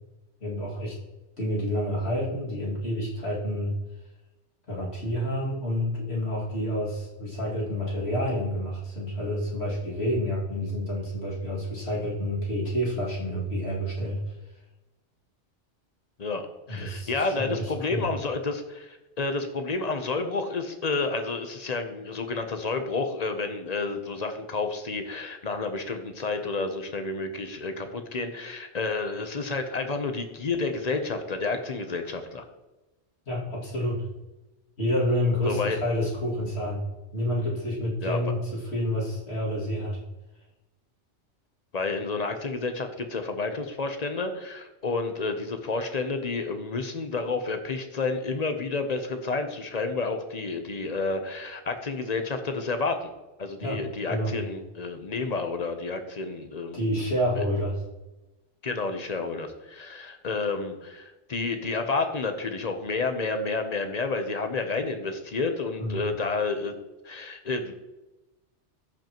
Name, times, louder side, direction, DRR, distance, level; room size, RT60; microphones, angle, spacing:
voice 1, 0.4-1.0 1.4-3.8 4.7-14.2 16.7-18.0 33.3-34.1 34.8-36.8 37.1-40.0 53.6-53.8 54.1-54.3 56.7-57.8 65.8-66.0, equal, 65° left, -5 dB, 2.6 m, -29 dB
voice 2, 16.2-32.4 35.4-35.8 38.0-38.2 41.7-53.1 53.4-56.9 57.4-57.5 58.6-66.7 67.0-67.7, left 3 dB, 40° left, 7 dB, 0.9 m, -30 dB
14.0 x 5.4 x 3.0 m, 1.0 s
omnidirectional pair, 1.2 m